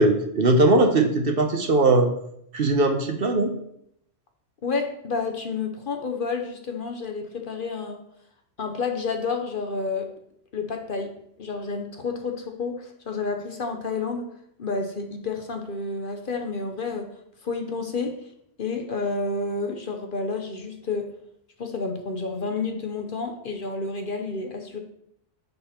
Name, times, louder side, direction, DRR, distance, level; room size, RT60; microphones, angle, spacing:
voice 1, 0.0-2.1 2.5-3.5, right 2 dB, 50° right, 5 dB, 1.0 m, -19 dB
voice 2, 4.6-8.0 8.6-10.1 10.5-14.3 14.6-17.1 17.4-18.3 18.6-21.1 21.6-24.8, left 4 dB, 50° left, 4 dB, 0.9 m, -30 dB
10.5 x 4.2 x 4.3 m, 0.74 s
omnidirectional pair, 1.3 m